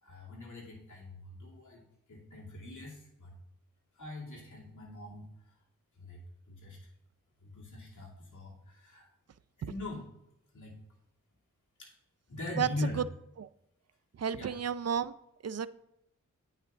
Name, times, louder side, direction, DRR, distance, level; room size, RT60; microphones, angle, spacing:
voice 1, 0.0-1.8 2.1-3.3 4.0-5.3 6.0-6.2 6.5-6.8 7.4-9.1 9.6-10.0 10.5-10.8 11.8-11.9 12.3-13.0 14.3-14.5, left 2 dB, 65° left, -3 dB, 2.6 m, -41 dB
voice 2, 14.2-15.1 15.4-15.7, right 8 dB, 50° right, 15 dB, 0.5 m, -31 dB
9.4 x 5.7 x 3.6 m, 0.84 s
cardioid pair, 65°, 32 cm